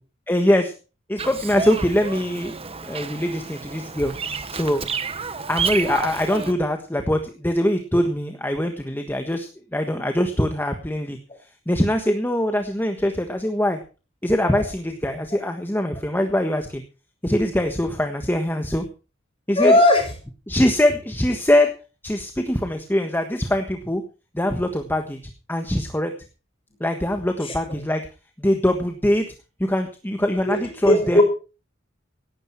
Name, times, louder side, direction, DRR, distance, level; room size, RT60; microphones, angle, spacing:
voice 1, 0.3-0.7 1.1-2.5 2.8-4.1 4.5-4.9 5.5-11.2 11.7-13.8 14.2-16.8 17.2-18.8 19.5-19.7 20.5-21.7 22.0-24.0 24.3-25.2 25.5-26.1 26.8-28.0 28.4-29.2 29.6-31.2, left 1 dB, 10° left, 6 dB, 1.4 m, -22 dB
Bird vocalization bird call bird song, 1.2-6.5, right 5 dB, 30° right, 1.3 m, -30 dB
voice 2, 19.6-20.1 27.4-27.8 30.4-31.2, left 1 dB, 30° left, 4 dB, 6.3 m, -18 dB
17.5 x 12.0 x 4.6 m, 0.34 s
head